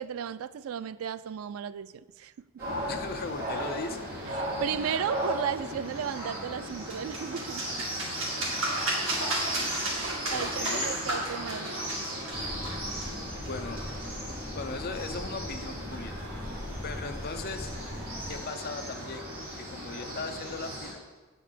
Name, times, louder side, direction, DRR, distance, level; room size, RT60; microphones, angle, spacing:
voice 1, 0.0-2.5 4.4-7.8 9.9-11.7, right 8 dB, 85° right, 15 dB, 0.4 m, -35 dB
sound 1, 2.6-20.9, equal, 45° right, 2.8 m, -36 dB
voice 2, 2.9-4.0 10.3-10.9 13.5-13.9 14.5-16.1 16.8-17.8 18.3-19.3 19.6-21.0, left 3 dB, 45° left, 6 dB, 0.7 m, -38 dB
sound 2, 6.6-14.2, right 2 dB, 70° right, 2.4 m, -34 dB
sound 3, 12.3-18.5, left 1 dB, 10° left, 0.3 m, -40 dB
8.6 x 5.3 x 6.7 m, 1.2 s
head